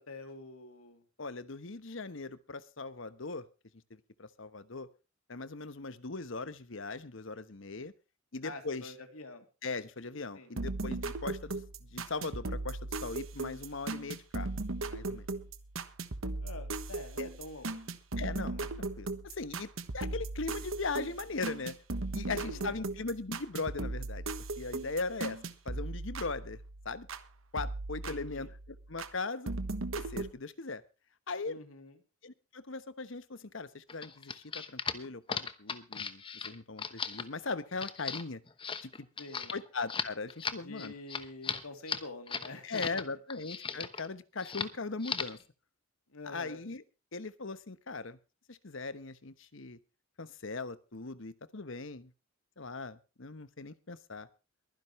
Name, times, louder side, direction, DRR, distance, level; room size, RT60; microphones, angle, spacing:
voice 1, 0.0-1.0 8.4-9.5 10.3-10.5 16.4-17.9 22.2-22.8 28.0-28.5 31.5-32.0 39.2-39.5 40.6-43.0 46.1-46.6, left 2 dB, 85° left, 6 dB, 3.0 m, -47 dB
voice 2, 1.2-3.5 3.9-4.9 5.3-7.9 8.3-8.9 9.6-14.5 14.9-15.3 17.2-17.3 18.2-21.8 22.1-24.2 24.6-25.4 25.6-26.6 26.8-27.1 27.5-29.5 30.0-30.8 31.3-31.6 32.2-38.4 38.8-39.1 39.5-40.9 42.6-45.4 46.2-46.8 47.1-48.2 48.5-49.8 50.2-52.1 52.6-54.3, left 3 dB, 65° left, 14 dB, 1.1 m, -39 dB
sound 1, 10.6-27.2 27.6-29.1 29.5-30.3, right 2 dB, 70° right, 1.3 m, -38 dB
sound 2, 33.9-43.0 43.3-44.1 44.4-44.7 45.0-45.4, left 6 dB, 25° left, 1.0 m, -37 dB
23.0 x 10.5 x 3.2 m, 0.32 s
head